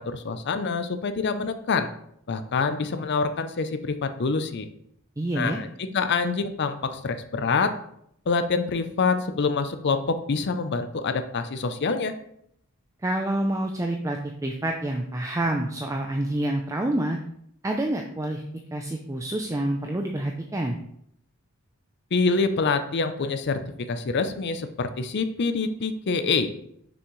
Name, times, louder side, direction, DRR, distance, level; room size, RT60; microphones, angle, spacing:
voice 1, 0.0-1.9 2.3-4.7 5.3-7.7 8.3-12.1 22.1-23.6 23.9-26.5, left 4 dB, 55° left, 10 dB, 0.5 m, -26 dB
voice 2, 5.2-5.6 13.0-17.2 17.6-18.4 18.7-20.8, right 1 dB, 15° right, 3 dB, 0.4 m, -27 dB
6.2 x 6.1 x 3.1 m, 0.72 s
head